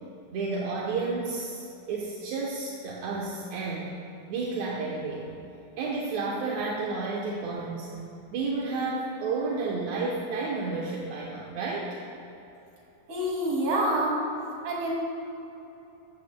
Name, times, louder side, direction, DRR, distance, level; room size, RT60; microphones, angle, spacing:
voice 1, 0.3-3.9 4.3-5.3 5.8-7.9 8.3-12.0, right 3 dB, 65° right, -3 dB, 1.9 m, -31 dB
voice 2, 13.1-14.2 14.6-14.9, right 1 dB, 45° right, -4 dB, 3.1 m, -26 dB
14.5 x 13.5 x 2.2 m, 3.0 s
omnidirectional pair, 4.1 m